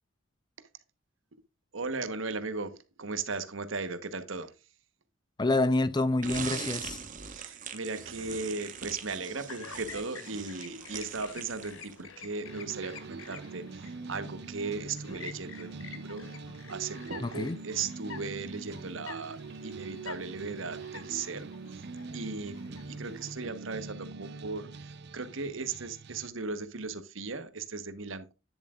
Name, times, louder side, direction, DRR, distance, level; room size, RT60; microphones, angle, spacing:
voice 1, 1.7-4.5 7.3-13.8 14.1-16.2 16.7-19.4 19.6-21.9 22.1-28.3, right 4 dB, 75° right, 1.1 m, -37 dB
voice 2, 5.4-7.0 17.2-17.6, left 2 dB, 20° left, 0.5 m, -27 dB
sound 1, 6.2-12.1, right 6 dB, 40° right, 1.2 m, -41 dB
Chirp tweet, 8.2-23.3, left 6 dB, 85° left, 1.0 m, -49 dB
sound 2, 12.4-26.3, right 4 dB, 55° right, 0.5 m, -43 dB
10.0 x 7.3 x 2.4 m
head